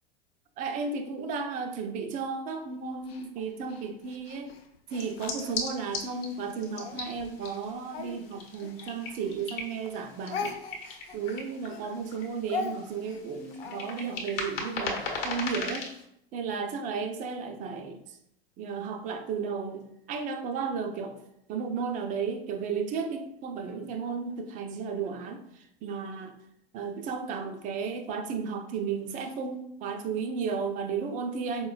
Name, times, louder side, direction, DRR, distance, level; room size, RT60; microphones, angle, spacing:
voice 1, 0.6-4.5 4.9-10.5 11.1-15.9 16.3-18.2 18.6-21.2 21.5-26.4 26.7-31.7, right 5 dB, 25° right, 6 dB, 0.4 m, -34 dB
Speech, 3.1-6.2 6.7-9.6 9.8-14.2, left 4 dB, 75° left, 0.5 m, -40 dB
sound 1, 5.0-16.0, left 3 dB, 40° left, 0.8 m, -39 dB
4.2 x 2.1 x 2.3 m, 0.78 s
figure-of-eight pair, 85°, 31 cm